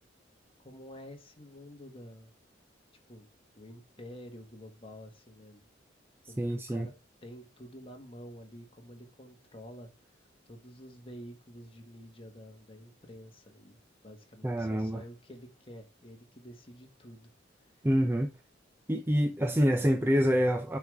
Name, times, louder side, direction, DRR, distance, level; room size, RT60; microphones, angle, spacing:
voice 1, 0.6-2.3 3.1-3.3 3.6-5.7 6.3-9.9 10.1-13.8 14.0-17.3, equal, 30° left, 1.7 m, -49 dB
voice 2, 6.4-6.9 14.4-15.0 17.8-18.3 18.9-20.8, equal, 10° right, 0.5 m, -26 dB
8.3 x 5.0 x 3.5 m
head